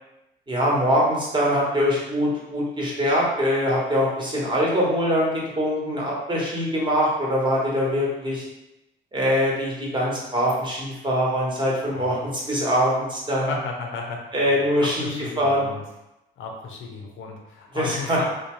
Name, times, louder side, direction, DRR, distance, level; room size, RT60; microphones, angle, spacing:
voice 1, 0.5-8.4 9.1-13.5 14.3-15.6 17.7-18.2, equal, 25° right, -5 dB, 1.0 m, -23 dB
voice 2, 13.5-15.8 16.4-18.3, left 4 dB, 80° left, 1 dB, 0.6 m, -34 dB
2.7 x 2.1 x 3.0 m, 0.93 s
cardioid pair, 90°, 20 cm